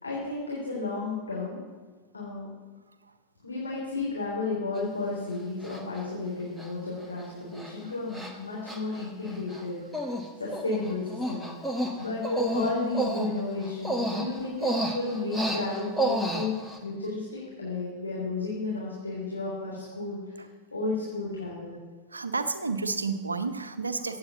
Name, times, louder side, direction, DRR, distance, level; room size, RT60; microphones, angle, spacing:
voice 1, 0.0-1.6 2.1-2.5 3.4-10.1 10.4-11.5 12.0-16.6 16.8-20.4 20.7-21.8, left 3 dB, 80° left, -6 dB, 3.6 m, -33 dB
Human voice, 4.8-4.9 5.6-6.0 6.6-6.7 7.0-7.3 7.5-7.7 8.1-8.3 8.7-9.6 9.9-10.3 10.5-16.8, right 1 dB, ahead, 1.5 m, -31 dB
voice 2, 22.1-24.2, right 4 dB, 80° right, 10 dB, 1.0 m, -31 dB
15.0 x 8.6 x 7.1 m, 1.4 s
figure-of-eight pair, 90°, 0 cm